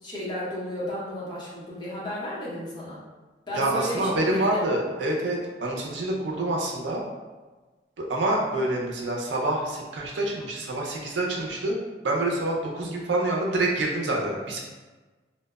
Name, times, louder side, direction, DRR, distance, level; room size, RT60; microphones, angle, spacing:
voice 1, 0.0-3.0 3.5-4.6, equal, 25° left, -7 dB, 0.7 m, -33 dB
voice 2, 3.5-7.0 8.0-11.8 12.0-14.6, right 1 dB, 90° right, -1 dB, 0.5 m, -27 dB
2.7 x 2.0 x 2.2 m, 1.3 s
head